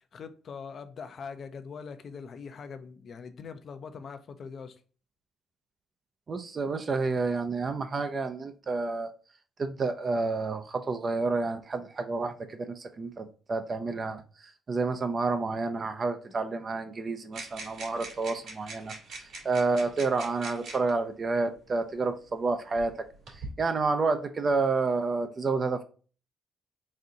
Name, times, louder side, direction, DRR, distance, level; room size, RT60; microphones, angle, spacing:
voice 1, 0.0-4.8, left 5 dB, 55° left, 0.6 m, -42 dB
voice 2, 6.3-9.1 9.6-14.2 14.7-22.9 23.6-25.8, right 3 dB, 40° right, 0.5 m, -29 dB
sound 1, 17.3-20.9 21.9-22.0 22.8-23.5, right 3 dB, 75° right, 2.3 m, -43 dB
4.2 x 2.6 x 3.7 m
cardioid pair, 90°, 0 cm